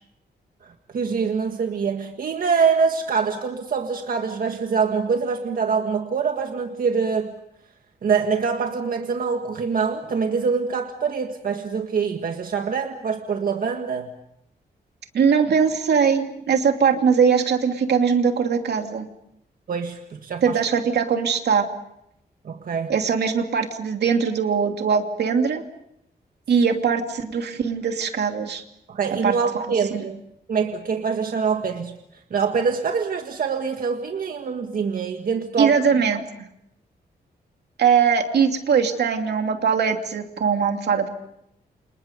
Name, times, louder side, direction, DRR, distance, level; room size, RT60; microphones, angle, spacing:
voice 1, 0.6-7.3 8.0-14.1 19.7-20.6 22.4-22.9 28.9-30.2 30.5-32.0 32.3-35.8, right 5 dB, 60° right, 4 dB, 1.7 m, -24 dB
voice 2, 15.1-19.1 20.4-21.6 22.9-25.6 26.5-28.6 29.2-29.4 29.9-30.0 35.6-36.2 37.8-41.1, right 6 dB, 80° right, 4 dB, 2.8 m, -21 dB
29.5 x 27.5 x 5.3 m, 0.77 s
wide cardioid pair, 155°, 17 cm